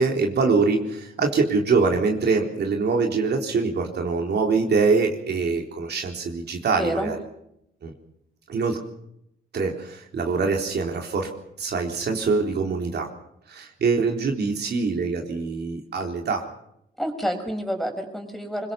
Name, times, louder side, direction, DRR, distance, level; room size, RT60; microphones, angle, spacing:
voice 1, 0.0-7.2 7.8-7.9 8.5-8.8 9.5-11.3 11.6-13.1 13.5-16.4, right 4 dB, 55° right, 2 dB, 3.9 m, -24 dB
voice 2, 6.7-7.1 17.0-18.7, equal, ahead, 4 dB, 6.0 m, -28 dB
24.5 x 22.0 x 6.0 m, 0.77 s
cardioid pair, 90°, 20 cm